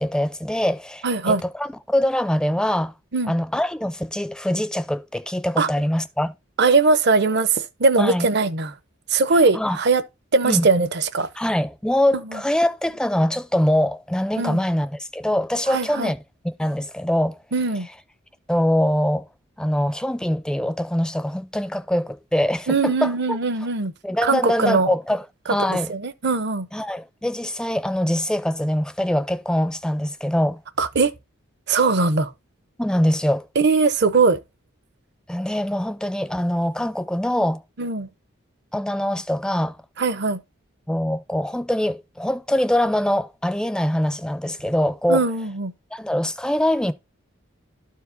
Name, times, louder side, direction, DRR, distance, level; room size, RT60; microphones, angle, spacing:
voice 1, 0.0-2.9 3.3-6.3 8.0-8.3 9.3-9.8 10.4-10.7 11.4-16.2 16.4-17.4 18.5-19.3 19.6-23.4 24.0-25.9 26.7-30.6 32.8-33.5 35.3-37.6 38.7-39.8 40.9-45.2 45.9-46.9, left 1 dB, 5° left, 0.4 m, -23 dB
voice 2, 1.0-1.4 3.1-3.3 5.6-5.7 6.6-8.7 9.1-10.0 10.3-11.3 12.3-12.4 14.4-14.6 15.7-16.1 17.5-17.9 22.7-23.9 24.2-24.9 25.7-26.7 30.8-31.1 31.7-32.3 33.6-34.4 37.8-38.1 40.0-40.4 45.1-45.7, right 4 dB, 55° right, 0.6 m, -20 dB
12.5 x 4.6 x 2.6 m
head